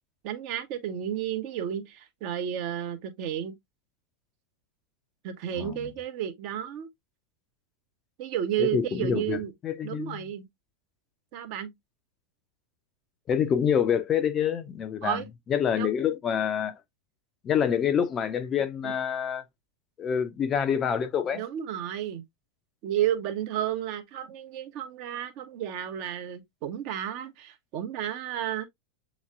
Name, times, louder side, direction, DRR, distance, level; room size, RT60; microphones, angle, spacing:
voice 1, 0.2-3.5 5.2-6.9 8.2-9.5 9.8-10.5 11.3-11.7 15.0-15.3 15.8-15.9 18.8-18.9 21.3-22.2 22.8-28.7, right 10 dB, 45° right, 0.8 m, -32 dB
voice 2, 5.6-5.9 8.6-9.4 9.6-10.3 13.3-15.2 15.5-16.7 17.4-19.4 20.0-21.4, left 8 dB, 25° left, 0.6 m, -26 dB
7.1 x 3.1 x 2.4 m
figure-of-eight pair, 90°, 0 cm